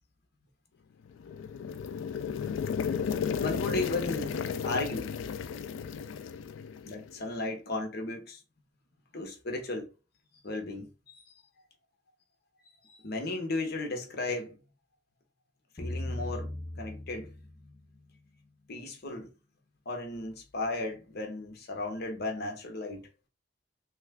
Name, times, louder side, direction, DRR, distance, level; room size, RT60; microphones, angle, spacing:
sound 1, 1.1-7.1, left 6 dB, 85° left, 0.3 m, -34 dB
voice 1, 3.4-5.6 6.8-8.4 9.1-9.9 10.4-11.2 12.8-14.6 15.7-16.5 16.8-17.3 18.7-19.3 19.9-23.1, left 2 dB, 60° left, 0.8 m, -35 dB
sound 2, 15.8-18.2, left 1 dB, 25° left, 0.5 m, -38 dB
3.1 x 2.4 x 3.4 m
head